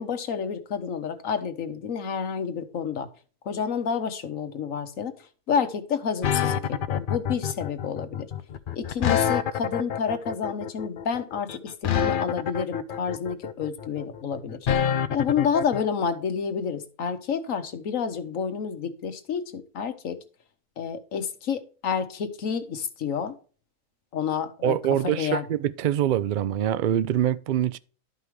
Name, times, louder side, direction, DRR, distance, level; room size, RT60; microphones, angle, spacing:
voice 1, 0.0-3.1 3.4-8.3 8.7-14.6 15.1-20.2 20.8-23.3 24.1-25.4, left 6 dB, 75° left, 1.4 m, -29 dB
sound 1, 6.2-15.8, left 8 dB, 55° left, 0.6 m, -27 dB
voice 2, 24.6-27.8, right 11 dB, 75° right, 0.4 m, -24 dB
12.0 x 5.5 x 3.1 m
omnidirectional pair, 1.4 m